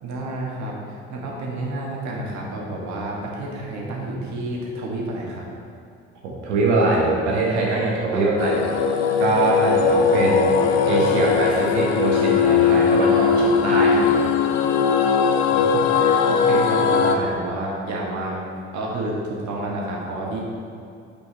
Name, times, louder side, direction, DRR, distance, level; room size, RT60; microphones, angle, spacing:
voice 1, 0.0-5.5 8.1-8.2 15.5-18.4 18.7-20.4, right 1 dB, 55° right, -2 dB, 1.7 m, -30 dB
voice 2, 6.2-8.6 9.2-10.5 10.9-14.3 17.1-17.3, right 2 dB, 80° right, -3 dB, 1.4 m, -22 dB
sound 1, 8.4-17.1, left 6 dB, 75° left, 0.6 m, -19 dB
8.5 x 5.2 x 3.4 m, 2.5 s
hypercardioid pair, 55°, 33 cm